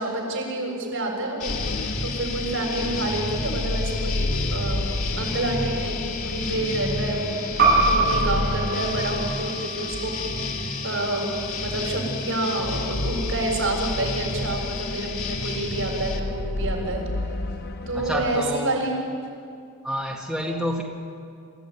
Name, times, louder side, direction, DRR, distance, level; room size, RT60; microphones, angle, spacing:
voice 1, 0.0-1.6 2.0-4.9 5.2-6.0 6.2-7.4 7.8-11.2 11.6-17.0 17.9-19.2, right 2 dB, 70° right, -1 dB, 7.0 m, -28 dB
sound 1, 1.4-16.2, left 3 dB, 85° left, 2.6 m, -31 dB
sound 2, 1.4-18.4, left 2 dB, 45° left, 0.9 m, -32 dB
sound 3, 7.6-12.7, right 3 dB, 45° right, 7.9 m, -26 dB
voice 2, 17.9-18.8 19.8-20.8, equal, ahead, -3 dB, 2.0 m, -28 dB
26.5 x 15.0 x 9.6 m, 2.4 s
head